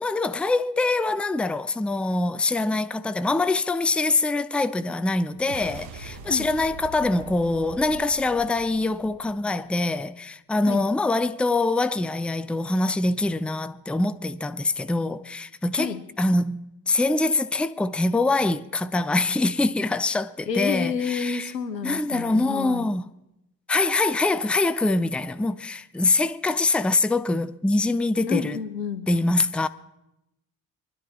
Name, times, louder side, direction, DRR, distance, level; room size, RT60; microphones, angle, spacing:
voice 1, 0.0-21.5 21.8-23.0 23.7-28.6 29.1-29.7, left 2 dB, ahead, 0.5 m, -24 dB
sound 1, 5.3-9.9, right 4 dB, 50° right, 1.5 m, -43 dB
voice 2, 20.5-22.9 28.3-29.1, left 7 dB, 85° left, 1.0 m, -29 dB
24.0 x 11.5 x 4.3 m
figure-of-eight pair, 45°, 48 cm